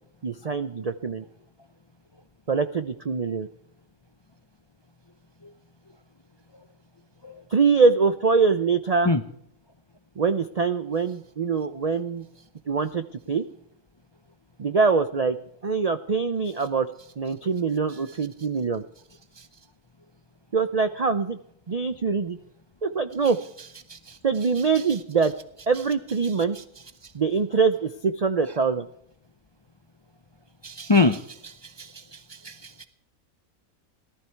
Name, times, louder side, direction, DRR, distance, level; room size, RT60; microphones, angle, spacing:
voice 1, 0.2-1.2 2.5-3.5 7.5-9.2 10.2-12.3 12.7-13.4 14.6-15.4 15.6-16.9 17.2-18.8 20.5-21.4 21.7-22.4 22.8-23.4 24.2-25.3 25.7-26.6 27.1-28.9, right 5 dB, 70° right, 10 dB, 0.3 m, -23 dB
voice 2, 30.6-31.5 31.8-31.9 32.4-32.9, left 3 dB, 40° left, 9 dB, 0.4 m, -23 dB
18.0 x 13.0 x 4.6 m, 0.71 s
omnidirectional pair, 1.6 m